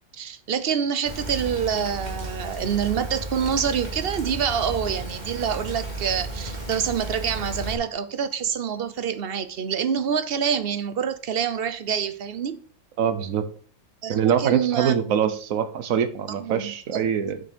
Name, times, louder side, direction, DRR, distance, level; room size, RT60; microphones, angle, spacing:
voice 1, 0.1-12.6 14.0-15.3 16.3-17.0, right 7 dB, 50° right, 0.9 m, -27 dB
Rain, 1.1-7.7, right 2 dB, 30° right, 2.2 m, -33 dB
voice 2, 13.0-13.4 14.1-17.4, right 8 dB, 80° right, 1.3 m, -24 dB
7.7 x 6.1 x 5.2 m
omnidirectional pair, 1.4 m